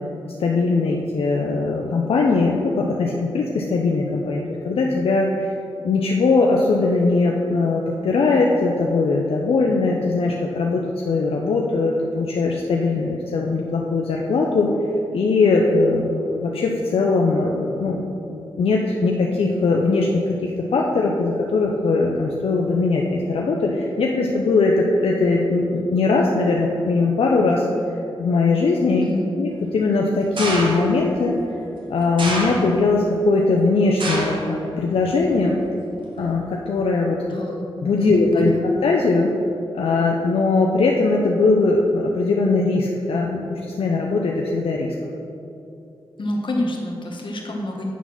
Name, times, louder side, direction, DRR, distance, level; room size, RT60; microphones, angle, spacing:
voice 1, 0.4-5.5 5.8-14.7 15.1-27.7 28.2-29.0 29.4-31.3 31.9-35.6 36.2-37.2 37.8-39.3 39.7-44.9, left 3 dB, 80° left, -1 dB, 0.6 m, -20 dB
sound 1, 30.4-31.0 32.2-33.0 34.0-34.5 34.9-35.4 36.2-36.3, right 1 dB, 60° right, 1.8 m, -26 dB
voice 2, 37.3-37.6 38.0-38.6 46.2-47.9, left 1 dB, 55° left, 0 dB, 1.4 m, -27 dB
9.1 x 4.1 x 6.0 m, 2.8 s
cardioid pair, 60°, 10 cm